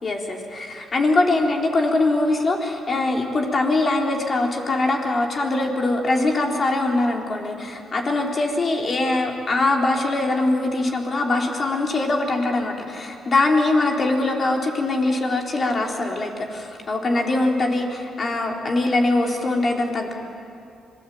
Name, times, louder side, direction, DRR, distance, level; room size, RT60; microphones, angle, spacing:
voice 1, 0.0-20.1, left 2 dB, 40° left, 1 dB, 4.1 m, -22 dB
26.0 x 20.5 x 8.7 m, 2.6 s
cardioid pair, 90°, 0 cm